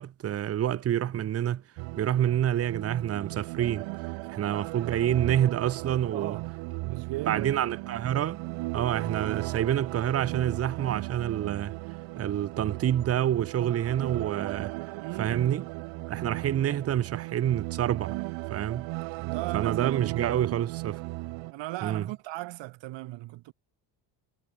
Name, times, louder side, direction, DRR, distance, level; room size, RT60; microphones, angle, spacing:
voice 1, 0.0-1.6 2.0-3.9 4.3-6.4 7.3-8.4 8.7-11.8 12.2-14.7 15.2-15.6 16.1-18.2 18.5-18.9 19.5-21.0 21.8-22.0, right 11 dB, 30° right, 0.9 m, -27 dB
sound 1, 1.8-21.5, right 24 dB, 90° right, 1.3 m, -36 dB
voice 2, 6.1-6.5 6.8-7.7 15.0-15.5 19.2-20.4 21.5-23.5, right 18 dB, 70° right, 3.1 m, -37 dB
cardioid pair, 155°, 46 cm